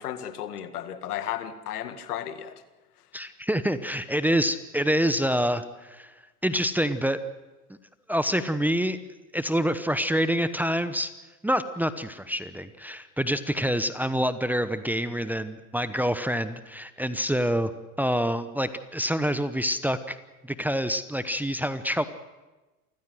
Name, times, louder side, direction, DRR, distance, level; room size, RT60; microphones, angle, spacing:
voice 1, 0.0-2.6, left 10 dB, 75° left, 2.0 m, -34 dB
voice 2, 3.1-6.1 6.4-7.2 8.1-9.0 9.3-11.1 11.4-17.7 18.0-20.2 20.4-22.0, equal, 5° right, 0.9 m, -26 dB
28.5 x 15.0 x 7.8 m
hypercardioid pair, 90°, 46 cm